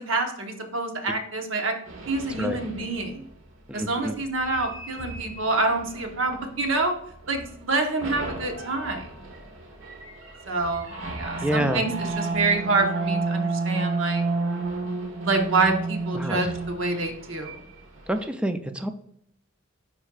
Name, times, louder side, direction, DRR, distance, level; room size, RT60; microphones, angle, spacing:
voice 1, 0.0-1.7 2.1-3.2 3.7-6.9 7.3-9.1 10.5-14.2 15.2-17.5, right 3 dB, 70° right, 3 dB, 1.1 m, -27 dB
sound 1, 1.9-3.2 4.4-6.9 7.2-7.6 8.0-18.3, right 3 dB, 90° right, 1.2 m, -32 dB
voice 2, 3.7-4.1 11.4-11.8 16.1-16.5 18.1-18.9, equal, 5° right, 7 dB, 0.4 m, -27 dB
9.2 x 4.4 x 2.4 m, 0.72 s
head